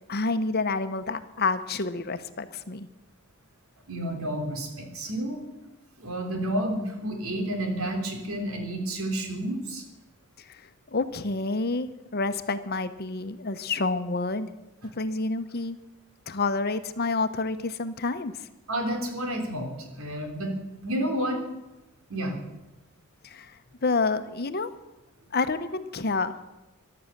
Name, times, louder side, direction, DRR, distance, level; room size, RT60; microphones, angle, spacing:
voice 1, 0.1-2.9 10.9-14.5 15.0-15.8 16.3-18.3 23.2-23.5 23.8-24.7 25.3-26.4, left 3 dB, 45° left, 11 dB, 0.9 m, -28 dB
voice 2, 3.9-5.4 6.0-9.8 14.8-14.9 18.7-20.5 20.8-21.4 22.1-22.4, right 1 dB, 80° right, 3 dB, 3.3 m, -30 dB
14.5 x 12.0 x 6.7 m, 1.0 s
head